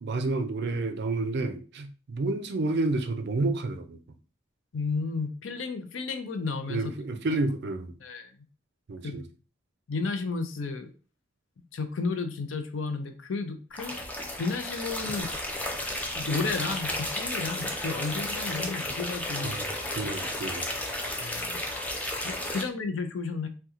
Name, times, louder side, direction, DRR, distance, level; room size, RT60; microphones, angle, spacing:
voice 1, 0.0-4.0 6.7-7.9 8.9-9.2 19.4-19.7 20.0-20.7, right 2 dB, 55° right, 0.4 m, -30 dB
voice 2, 4.7-6.9 7.3-7.4 8.0-8.3 9.0-9.2 9.9-10.9 11.7-14.0 14.4-15.3 16.1-19.6 21.2-21.6 22.2-23.5, left 4 dB, 65° left, 0.5 m, -32 dB
sound 1, 13.7-22.6, left 1 dB, 5° left, 0.4 m, -33 dB
2.8 x 2.2 x 3.6 m
head